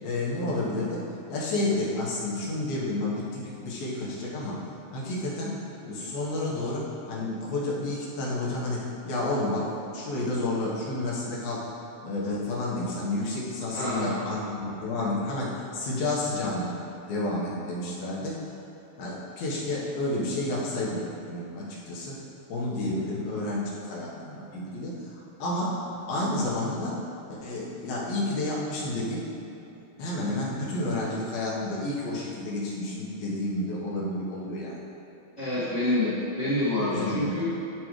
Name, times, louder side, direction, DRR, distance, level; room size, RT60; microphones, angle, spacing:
voice 1, 0.0-1.0 1.3-4.6 4.9-11.6 12.0-16.8 17.1-18.4 19.0-22.2 22.5-25.8 26.1-27.0 27.3-29.2 30.0-34.8 35.5-35.7 36.8-37.6, left 2 dB, 75° left, -6 dB, 3.0 m, -30 dB
voice 2, 13.7-14.2 35.4-37.5, left 1 dB, 35° left, -12 dB, 1.1 m, -27 dB
12.0 x 5.0 x 3.1 m, 2.7 s
omnidirectional pair, 4.3 m